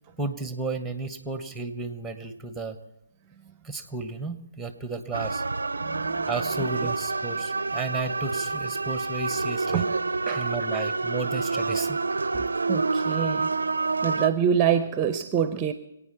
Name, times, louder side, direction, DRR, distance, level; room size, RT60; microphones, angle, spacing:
voice 1, 0.2-2.8 3.6-5.4 6.3-9.9 10.4-12.0, right 3 dB, ahead, 10 dB, 1.2 m, -33 dB
sound 1, 5.1-14.3, right 3 dB, 75° right, 0.4 m, -28 dB
voice 2, 5.8-6.3 6.8-6.9 9.7-10.0 10.3-10.9 12.3-13.5 14.0-15.7, right 8 dB, 20° right, 11 dB, 0.7 m, -26 dB
25.5 x 9.1 x 5.7 m, 0.90 s
figure-of-eight pair, 135°, 0 cm